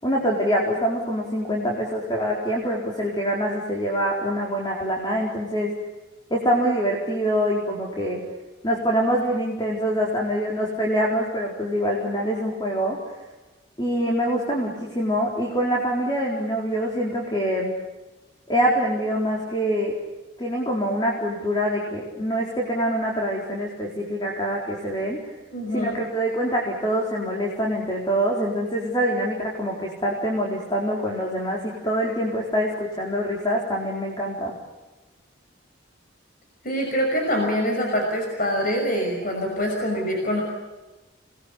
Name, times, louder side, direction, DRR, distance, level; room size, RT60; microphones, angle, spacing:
voice 1, 0.0-5.7 6.3-8.2 8.6-13.0 13.8-17.7 18.5-20.0 20.4-25.2 25.7-34.5, equal, 20° left, -1 dB, 4.3 m, -25 dB
voice 2, 25.5-25.9 36.6-40.4, equal, 45° left, 1 dB, 5.9 m, -24 dB
29.0 x 21.0 x 8.5 m, 1.1 s
head